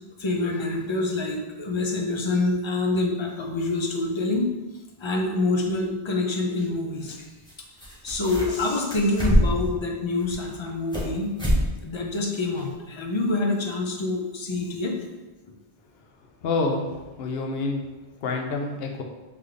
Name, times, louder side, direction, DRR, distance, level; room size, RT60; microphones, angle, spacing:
voice 1, 0.2-4.5 5.0-7.2 8.0-11.3 11.8-14.9, left 2 dB, 45° left, 1 dB, 0.4 m, -26 dB
sound 1, 7.4-7.5 7.8-8.6 8.9-9.7 10.2-11.1 11.4-11.6 12.0-12.1 12.6-12.7, equal, 5° left, 1.1 m, -24 dB
voice 2, 16.4-16.9 17.2-17.8 18.2-19.0, left 3 dB, 65° left, 2 dB, 0.8 m, -27 dB
3.3 x 3.3 x 3.7 m, 1.2 s
omnidirectional pair, 1.1 m